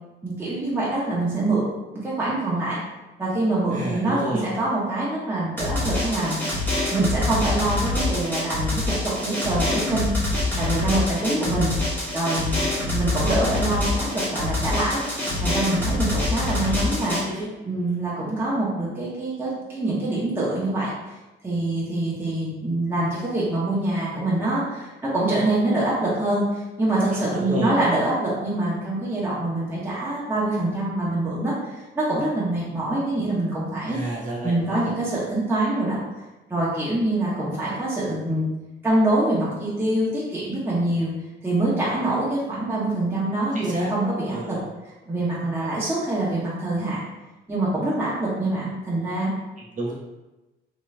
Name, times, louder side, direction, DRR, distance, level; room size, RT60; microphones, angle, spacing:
voice 1, 0.2-1.7 1.9-2.8 3.2-6.4 6.9-10.1 10.5-11.7 12.1-12.6 12.9-15.0 15.4-17.2 17.6-20.9 21.4-34.0 34.4-36.0 36.5-38.5 38.8-41.1 41.4-44.6 45.1-47.0 47.5-49.3, right 2 dB, 10° right, -7 dB, 0.8 m, -25 dB
voice 2, 3.7-4.5 10.5-10.7 16.6-17.5 27.3-27.8 33.9-34.9 43.5-43.9 44.3-44.6 49.6-49.9, right 1 dB, 40° right, -5 dB, 1.1 m, -31 dB
Drum, 5.6-17.2, left 2 dB, 10° left, 1.2 m, -25 dB
3.1 x 2.9 x 2.4 m, 1.1 s
cardioid pair, 90°, 20 cm